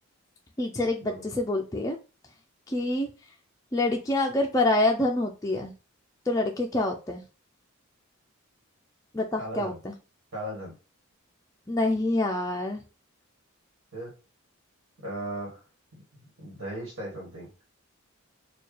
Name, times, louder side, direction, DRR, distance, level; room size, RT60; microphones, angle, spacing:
voice 1, 0.6-2.0 2.7-3.1 3.7-5.7 6.3-7.2 9.1-9.9 11.7-12.8, left 2 dB, 15° left, 0 dB, 0.4 m, -26 dB
voice 2, 9.4-9.8 10.3-10.7 13.9-14.1 15.0-15.6 15.9-16.0 16.4-17.5, right 1 dB, 70° right, -3 dB, 1.5 m, -37 dB
4.3 x 2.3 x 3.2 m, 0.32 s
head